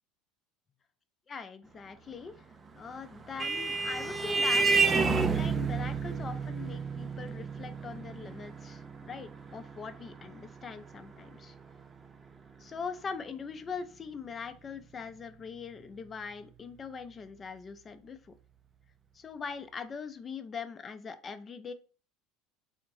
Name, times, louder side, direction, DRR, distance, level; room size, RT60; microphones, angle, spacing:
voice 1, 1.3-2.4 2.7-4.7 5.3-11.5 12.6-18.3 19.1-21.7, left 5 dB, 30° left, 10 dB, 0.6 m, -41 dB
Vehicle horn car horn honking, 2.8-11.8, right 4 dB, 25° right, 0.5 m, -31 dB
4.2 x 2.5 x 3.1 m, 0.36 s
supercardioid pair, 95°, 0 cm